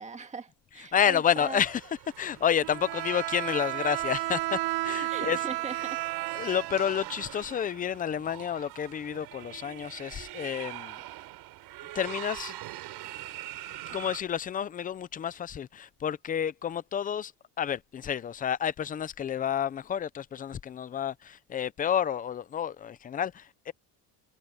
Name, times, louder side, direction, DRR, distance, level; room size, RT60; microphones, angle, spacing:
voice 1, 0.0-1.6 5.1-6.0, right 4 dB, 15° right, 1.9 m, -40 dB
voice 2, 0.9-1.8 2.2-4.6 4.8-5.4 6.3-11.0 11.9-12.6 13.9-17.3 17.6-23.7, left 9 dB, 20° left, 0.4 m, -30 dB
sound 1, 1.3-14.2, right 16 dB, 70° right, 3.8 m, -44 dB
Bowed string instrument, 2.6-7.7, right 19 dB, 85° right, 0.9 m, -33 dB
cardioid pair, 165°, 41 cm